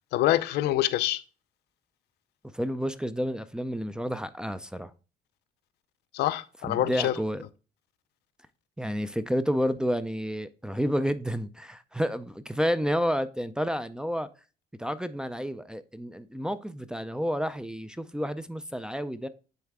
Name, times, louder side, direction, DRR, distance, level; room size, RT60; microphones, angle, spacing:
voice 1, 0.1-1.2 6.1-7.2, left 14 dB, 75° left, 0.5 m, -25 dB
voice 2, 2.5-4.9 6.7-7.4 8.8-14.3 14.8-19.3, equal, 5° right, 0.4 m, -30 dB
9.2 x 3.2 x 3.5 m
cardioid pair, 110°, 17 cm